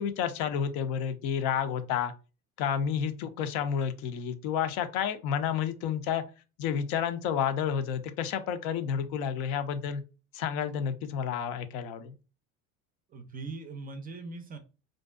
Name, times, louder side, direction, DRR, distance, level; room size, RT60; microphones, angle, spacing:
voice 1, 0.0-2.1 2.6-6.2 6.6-10.0 10.3-12.1, left 8 dB, 75° left, 0.5 m, -30 dB
voice 2, 13.1-14.6, right 3 dB, 25° right, 0.3 m, -41 dB
2.6 x 2.2 x 2.2 m
supercardioid pair, 100°, 35 cm